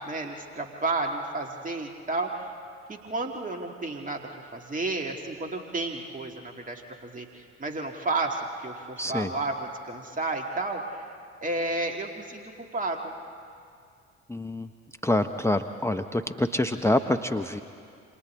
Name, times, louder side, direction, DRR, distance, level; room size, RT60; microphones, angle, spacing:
voice 1, 0.0-2.4 2.9-11.1 11.4-13.1, right 2 dB, 20° right, 3 dB, 2.2 m, -32 dB
voice 2, 9.0-9.3 14.3-14.7 15.0-17.6, left 1 dB, 5° left, 7 dB, 0.8 m, -26 dB
27.5 x 26.0 x 3.8 m, 2.3 s
figure-of-eight pair, 50°, 36 cm